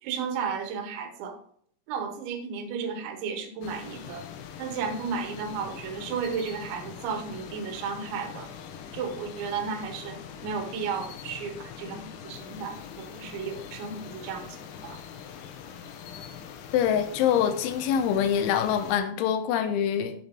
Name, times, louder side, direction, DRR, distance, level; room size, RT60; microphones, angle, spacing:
voice 1, 0.0-1.4 1.9-4.2 4.6-8.5 8.9-14.6 14.8-15.0, right 6 dB, 80° right, 3.5 m, -33 dB
sound 1, 3.6-19.0, left 8 dB, 75° left, 2.8 m, -43 dB
voice 2, 16.7-20.2, left 9 dB, 90° left, 3.3 m, -25 dB
8.9 x 8.1 x 4.4 m
omnidirectional pair, 5.2 m